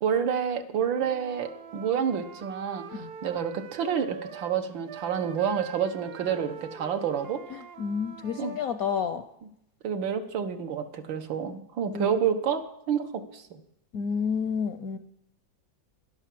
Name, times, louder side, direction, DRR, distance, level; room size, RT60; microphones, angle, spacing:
voice 1, 0.0-7.4 8.4-8.6 9.8-13.6, right 7 dB, 80° right, 7 dB, 1.9 m, -29 dB
Wind instrument woodwind instrument, 0.9-4.6 4.9-8.7, right 8 dB, 60° right, 1.2 m, -43 dB
voice 2, 7.5-9.2 11.9-12.1 13.9-15.0, left 6 dB, 65° left, 11 dB, 0.9 m, -30 dB
12.0 x 11.0 x 7.6 m, 0.77 s
omnidirectional pair, 2.1 m